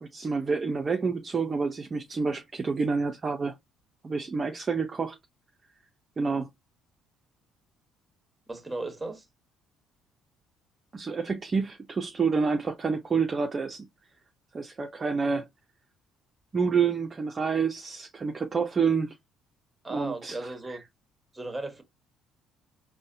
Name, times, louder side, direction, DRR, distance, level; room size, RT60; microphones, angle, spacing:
voice 1, 0.0-3.5 4.0-5.2 6.2-6.5 10.9-13.9 14.5-15.5 16.5-19.1 19.9-20.8, right 5 dB, 30° right, 0.5 m, -28 dB
voice 2, 8.5-9.3 19.8-20.8 21.3-21.8, right 2 dB, 10° right, 1.1 m, -36 dB
3.9 x 2.1 x 2.6 m
supercardioid pair, 85°, 0 cm